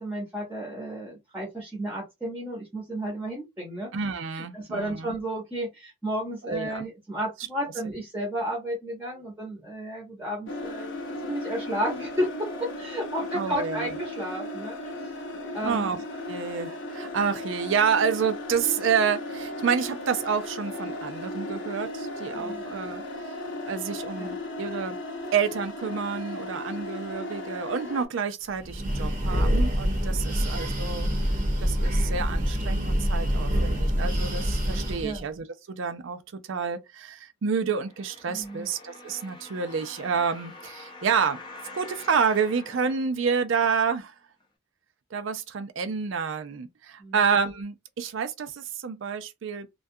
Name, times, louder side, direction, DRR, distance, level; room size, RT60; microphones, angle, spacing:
voice 1, 0.0-3.9 4.3-10.9 11.2-12.5 12.8-15.1 15.5-16.0 22.3-22.6 24.2-24.4 30.1-30.5 35.0-35.3 38.3-38.7 47.0-47.2, equal, 10° right, 0.8 m, -33 dB
voice 2, 3.9-5.1 6.5-6.8 7.8-7.9 13.3-13.9 15.6-16.0 16.3-23.0 23.7-25.0 25.3-31.1 31.6-36.2 36.5-41.4 41.7-44.1 45.1-49.7, right 6 dB, 70° right, 0.4 m, -29 dB
sound 1, 10.5-28.0, left 1 dB, 65° left, 0.7 m, -36 dB
Breathing, 28.6-35.2, equal, 40° right, 0.7 m, -26 dB
sound 2, 37.9-43.8 44.4-44.5, left 2 dB, 25° left, 0.5 m, -45 dB
2.3 x 2.2 x 2.6 m
head